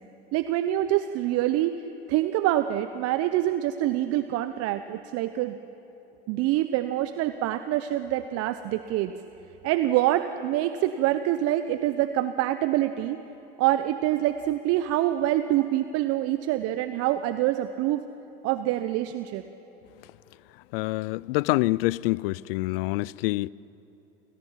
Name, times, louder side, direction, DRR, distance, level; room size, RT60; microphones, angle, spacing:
voice 1, 0.3-1.8 2.1-5.6 6.3-9.1 9.6-13.2 13.6-18.0 18.4-19.4, right 13 dB, 50° right, 1.0 m, -25 dB
voice 2, 20.7-23.5, left 20 dB, 65° left, 0.6 m, -26 dB
30.0 x 28.0 x 5.9 m
hypercardioid pair, 85°, 31 cm